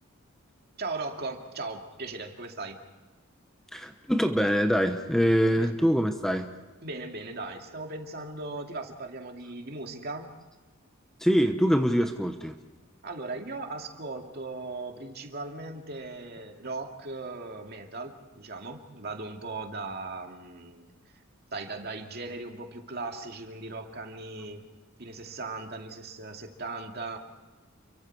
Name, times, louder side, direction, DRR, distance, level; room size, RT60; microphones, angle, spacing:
voice 1, 0.8-2.8 5.5-5.7 6.8-10.4 13.0-21.2 21.5-24.6 25.0-27.2, right 3 dB, 50° right, 3 dB, 2.4 m, -38 dB
voice 2, 3.7-6.5 11.2-12.5, equal, ahead, 6 dB, 1.0 m, -24 dB
30.0 x 23.5 x 4.7 m, 1.2 s
head